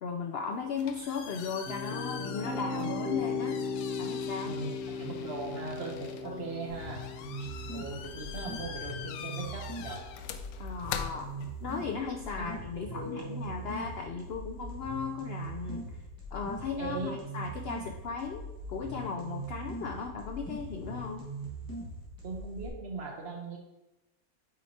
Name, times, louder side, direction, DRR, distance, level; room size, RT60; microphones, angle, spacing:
voice 1, 0.0-3.6 4.0-4.6 6.2-6.5 10.6-11.3 11.6-15.9 16.3-18.4 18.7-21.2, left 5 dB, 65° left, 4 dB, 0.6 m, -36 dB
sound 1, 0.5-12.0, left 7 dB, 85° left, 1.1 m, -44 dB
sound 2, 1.3-10.4, left 4 dB, 45° left, 0.9 m, -38 dB
voice 2, 4.4-7.0 7.4-10.1 12.4-12.6 12.9-13.4 16.8-17.2 22.2-23.6, right 3 dB, 50° right, 1 dB, 1.2 m, -39 dB
sound 3, 6.7-22.7, right 1 dB, 15° left, 1.8 m, -41 dB
8.6 x 4.5 x 2.8 m, 0.98 s
omnidirectional pair, 1.5 m